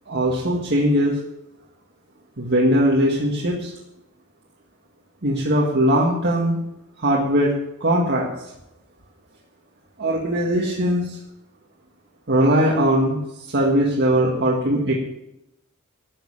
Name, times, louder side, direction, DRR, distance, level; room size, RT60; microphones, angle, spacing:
voice 1, 0.1-1.2 2.4-3.7 5.2-6.6 7.0-7.5 7.8-8.3 10.0-11.2 12.3-13.2 13.5-14.9, equal, 50° right, -3 dB, 1.9 m, -20 dB
13.0 x 6.7 x 8.6 m, 0.88 s
head